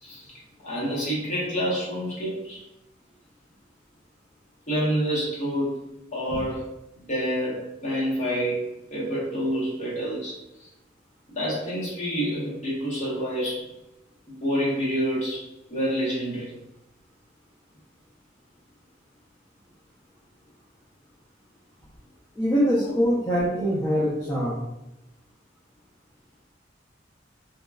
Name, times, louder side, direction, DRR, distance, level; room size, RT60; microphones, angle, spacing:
voice 1, 0.0-0.3 0.6-2.6 4.7-5.8 6.1-6.6 7.1-10.7 11.4-13.7 14.3-16.5 22.8-23.1, equal, 40° left, -7 dB, 0.9 m, -28 dB
voice 2, 22.4-24.6, equal, 15° left, -8 dB, 0.4 m, -23 dB
2.9 x 2.2 x 2.3 m, 0.88 s
head